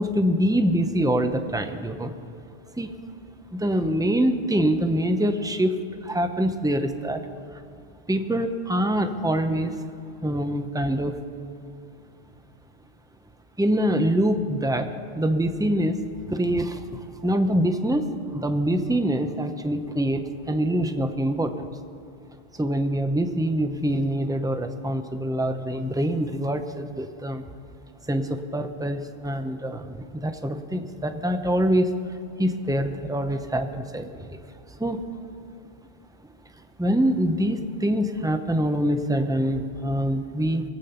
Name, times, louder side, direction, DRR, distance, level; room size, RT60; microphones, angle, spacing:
voice 1, 0.0-2.1 2.8-2.9 3.5-5.7 6.0-7.2 7.5-7.6 8.1-9.8 10.2-11.1 13.6-14.9 15.1-21.7 22.6-27.4 28.1-31.9 32.4-34.4 34.8-35.0 36.8-40.6, equal, 5° right, 7 dB, 0.5 m, -25 dB
22.5 x 8.5 x 5.6 m, 2.4 s
omnidirectional pair, 1.1 m